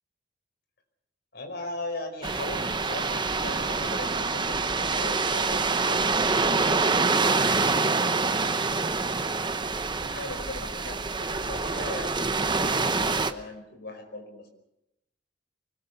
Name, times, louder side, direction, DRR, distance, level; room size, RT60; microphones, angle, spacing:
voice 1, 1.3-9.4 10.0-14.5, left 2 dB, 60° left, 5 dB, 4.9 m, -40 dB
sound 1, 2.2-13.3, right 4 dB, 25° right, 1.0 m, -26 dB
24.5 x 20.0 x 7.0 m, 0.84 s
head